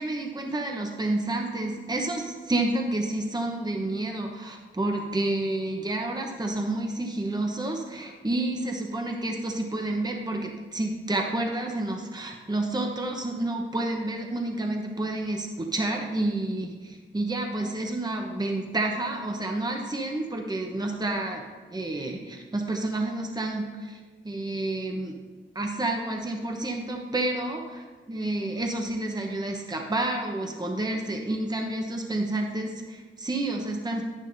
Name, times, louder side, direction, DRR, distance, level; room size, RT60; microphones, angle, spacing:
voice 1, 0.0-21.4 21.7-24.0 24.2-25.2 25.5-34.0, right 2 dB, 20° right, 2 dB, 1.0 m, -29 dB
10.5 x 9.9 x 2.7 m, 1.4 s
cardioid pair, 65°, 20 cm